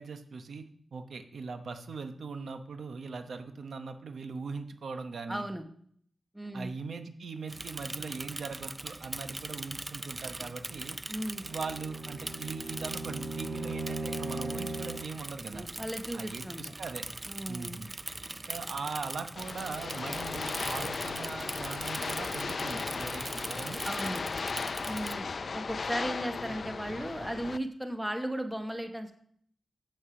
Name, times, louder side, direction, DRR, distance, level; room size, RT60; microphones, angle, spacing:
voice 1, 0.0-5.5 6.5-11.0 11.4-15.7 16.1-17.0 17.5-17.9 18.5-23.8 26.8-26.9, right 4 dB, 70° right, 7 dB, 0.9 m, -40 dB
voice 2, 5.3-5.6 6.3-6.7 11.1-11.4 15.5-16.8 17.3-17.8 23.8-24.2 24.9-29.2, right 1 dB, 5° right, 6 dB, 0.9 m, -36 dB
Bicycle / Mechanisms, 7.5-25.2, right 2 dB, 20° right, 0.4 m, -41 dB
Bowed string instrument, 11.3-15.2, right 2 dB, 35° right, 2.2 m, -38 dB
sound 1, 19.4-27.6, left 4 dB, 55° left, 0.4 m, -36 dB
7.7 x 6.3 x 5.9 m, 0.62 s
wide cardioid pair, 95°, 0 cm